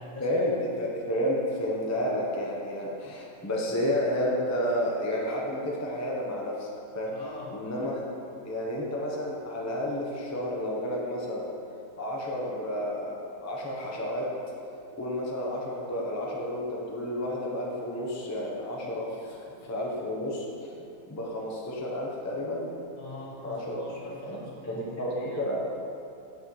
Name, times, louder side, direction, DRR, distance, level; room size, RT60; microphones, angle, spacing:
voice 1, 0.2-6.7 6.9-7.1 7.5-8.1 8.4-11.5 12.0-14.3 14.9-19.1 19.6-20.7 21.1-22.7 23.4-23.8 24.2-24.4 24.7-25.6, left 1 dB, 15° left, -3 dB, 0.6 m, -31 dB
voice 2, 7.1-7.5 19.1-19.8 23.0-25.4, left 2 dB, 70° left, -4 dB, 1.8 m, -43 dB
8.3 x 7.0 x 3.1 m, 2.7 s
omnidirectional pair, 1.6 m